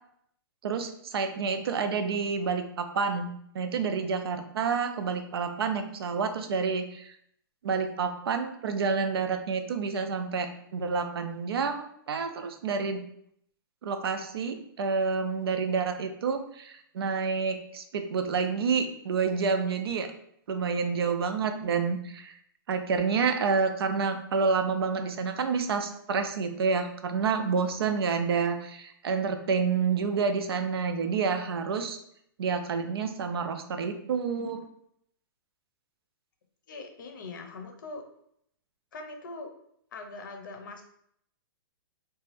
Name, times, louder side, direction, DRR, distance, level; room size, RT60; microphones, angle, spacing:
voice 1, 0.6-3.3 3.5-7.1 7.6-13.0 13.8-20.1 20.5-22.3 22.7-32.0 32.4-34.6, right 5 dB, 90° right, 7 dB, 0.4 m, -29 dB
voice 2, 36.7-38.0 38.9-39.5 39.9-40.8, left 3 dB, 55° left, 4 dB, 0.5 m, -41 dB
2.5 x 2.2 x 3.2 m, 0.71 s
hypercardioid pair, 170°, 13 cm